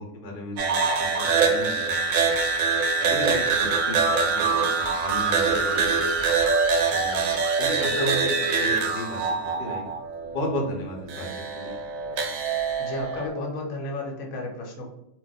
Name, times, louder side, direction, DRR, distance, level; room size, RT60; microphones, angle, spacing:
voice 1, 0.0-2.0 2.4-2.5 3.0-6.3 6.9-9.2 9.4-9.9 10.2-11.3 11.5-11.8, left 1 dB, 50° left, 0 dB, 0.8 m, -34 dB
sound 1, 0.6-10.5 11.1-13.3, right 4 dB, 75° right, 1.0 m, -24 dB
Screaming, 4.4-8.6, right 3 dB, 45° right, 0.7 m, -37 dB
voice 2, 12.8-14.9, left 2 dB, 85° left, 0 dB, 1.2 m, -33 dB
2.5 x 2.1 x 4.0 m, 0.82 s
omnidirectional pair, 1.4 m